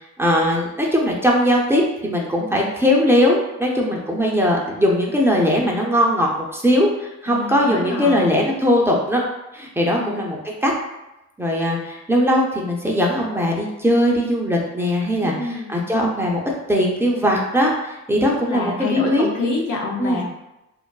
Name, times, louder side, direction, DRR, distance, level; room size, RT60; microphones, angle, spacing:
voice 1, 0.2-9.2 9.5-10.7 11.4-16.4 16.7-19.3 20.0-20.2, equal, 10° right, -3 dB, 0.4 m, -20 dB
voice 2, 7.3-8.2 10.0-10.3 15.2-15.7 18.5-20.2, left 3 dB, 80° left, 0 dB, 0.6 m, -27 dB
2.4 x 2.2 x 2.2 m, 0.92 s
cardioid pair, 90°, 30 cm